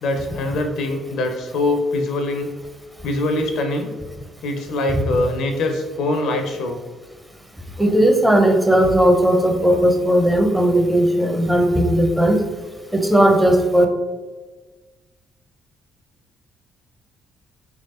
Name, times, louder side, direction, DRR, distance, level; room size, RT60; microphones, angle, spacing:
voice 1, 0.0-2.5 3.0-3.9 4.4-6.8, left 2 dB, 60° left, 4 dB, 0.4 m, -23 dB
voice 2, 7.8-12.4 12.9-13.9, right 1 dB, 10° right, 3 dB, 0.6 m, -16 dB
3.4 x 2.9 x 2.7 m, 1.3 s
figure-of-eight pair, 45°, 0 cm